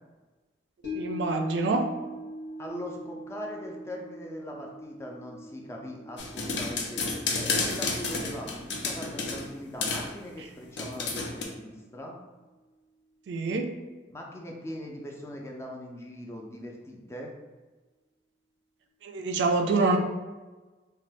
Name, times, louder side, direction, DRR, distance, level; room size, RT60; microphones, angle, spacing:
sound 1, 0.8-11.2 11.6-11.7, equal, 60° left, 0.9 m, -43 dB
voice 1, 0.9-1.8 13.3-13.7 19.0-20.0, right 3 dB, 85° right, 4 dB, 0.4 m, -26 dB
voice 2, 2.6-12.2 14.1-17.3 19.7-20.0, left 1 dB, 15° left, 0 dB, 0.3 m, -40 dB
sound 2, 6.2-9.5 9.8-10.1 10.8-11.4, left 3 dB, 80° left, 0.4 m, -30 dB
2.5 x 2.2 x 3.3 m, 1.2 s
head